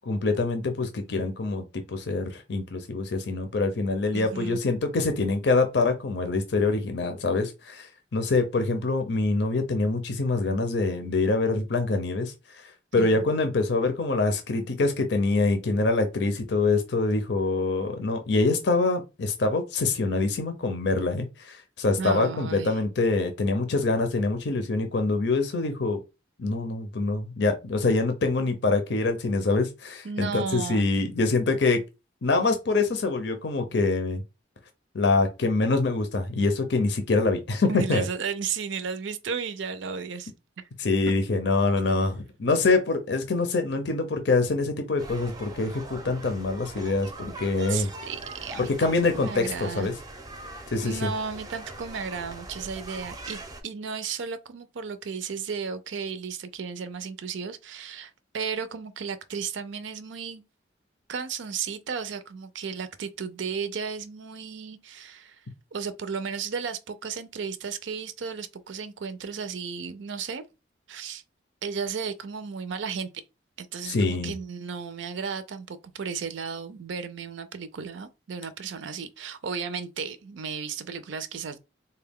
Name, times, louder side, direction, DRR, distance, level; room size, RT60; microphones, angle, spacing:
voice 1, 0.1-12.3 12.9-26.0 26.4-31.8 32.2-34.2 34.9-38.0 40.8-47.9 48.8-49.9 50.7-51.1 73.8-74.3, left 3 dB, 65° left, 0.6 m, -25 dB
voice 2, 4.1-4.6 13.0-13.2 22.0-22.8 30.0-30.9 37.7-40.3 47.7-49.9 50.8-60.4 61.1-65.4 65.7-70.4 70.9-71.2 71.6-73.1 73.6-81.6, right 6 dB, 80° right, 0.5 m, -34 dB
sound 1, 45.0-53.6, right 2 dB, 20° right, 0.5 m, -42 dB
3.9 x 2.2 x 3.5 m
head